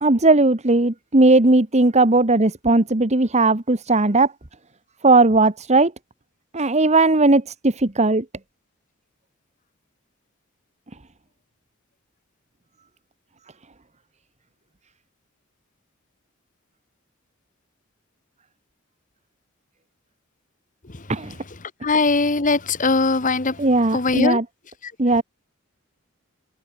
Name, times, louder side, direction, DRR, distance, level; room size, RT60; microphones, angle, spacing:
voice 1, 0.0-4.3 5.0-5.9 6.5-8.2 21.1-21.3 23.6-24.4 25.0-25.2, right 2 dB, 35° right, 1.4 m, -17 dB
voice 2, 21.8-23.6 23.9-24.4, left 3 dB, 40° left, 1.5 m, -20 dB
head